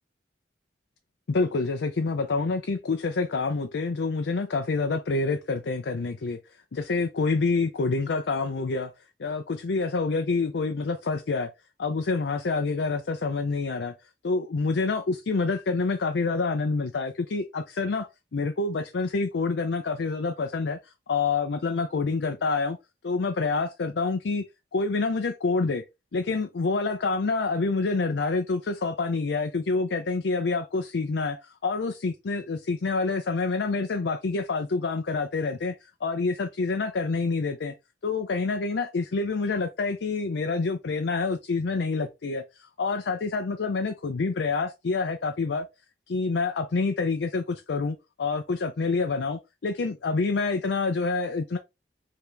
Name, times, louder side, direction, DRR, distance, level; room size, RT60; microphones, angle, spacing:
voice 1, 1.3-6.4 6.7-8.9 9.2-11.5 11.8-13.9 14.2-22.8 23.0-24.4 24.7-25.8 26.1-35.8 36.0-37.7 38.0-45.7 46.1-51.6, left 4 dB, 70° left, 0.5 m, -27 dB
4.9 x 2.8 x 3.3 m
head